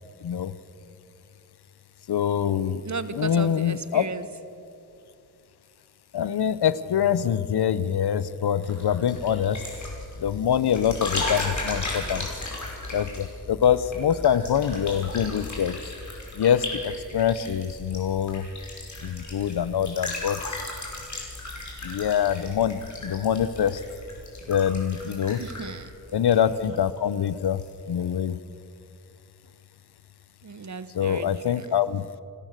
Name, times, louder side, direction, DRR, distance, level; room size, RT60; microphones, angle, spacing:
voice 1, 0.2-0.5 2.1-2.8 3.1-4.1 6.1-9.6 10.2-12.3 12.9-15.8 16.3-18.5 19.0-20.6 21.8-23.8 24.5-25.4 26.1-28.4 30.9-32.1, left 9 dB, 85° left, 16 dB, 0.8 m, -24 dB
voice 2, 2.8-4.3 25.4-25.9 30.4-31.8, right 4 dB, 50° right, 13 dB, 1.1 m, -35 dB
sound 1, 8.6-27.0 27.3-27.7, left 2 dB, 50° left, 5.4 m, -36 dB
29.0 x 14.0 x 6.6 m, 2.6 s
wide cardioid pair, 75°, 38 cm